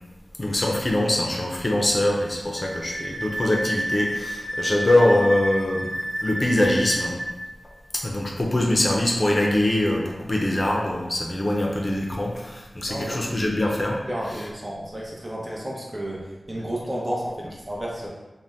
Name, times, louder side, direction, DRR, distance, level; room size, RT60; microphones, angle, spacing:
voice 1, 0.4-5.9 6.2-7.1 7.9-14.0, left 1 dB, 45° left, -1 dB, 0.5 m, -23 dB
Wind instrument woodwind instrument, 2.6-7.3, equal, 50° right, 1.4 m, -30 dB
voice 2, 12.9-13.5 14.1-18.1, right 1 dB, 30° right, -4 dB, 0.8 m, -32 dB
2.6 x 2.2 x 3.4 m, 1.1 s
cardioid pair, 40°, 0 cm